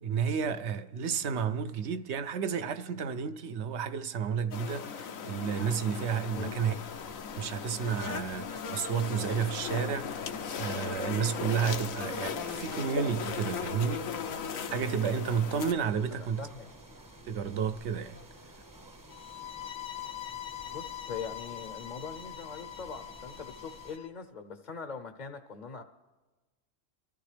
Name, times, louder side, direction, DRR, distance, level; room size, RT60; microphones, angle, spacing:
voice 1, 0.0-6.7 7.4-14.1 14.7-16.4 17.3-18.2, right 7 dB, 65° right, 0.9 m, -31 dB
sound 1, 4.5-15.7, left 6 dB, 85° left, 1.2 m, -37 dB
sound 2, 6.3-24.0, right 1 dB, 20° right, 0.7 m, -53 dB
voice 2, 16.1-16.8 20.7-25.8, left 5 dB, 45° left, 0.7 m, -42 dB
sound 3, 19.1-24.1, left 13 dB, 65° left, 0.9 m, -43 dB
24.0 x 14.0 x 3.3 m
omnidirectional pair, 1.4 m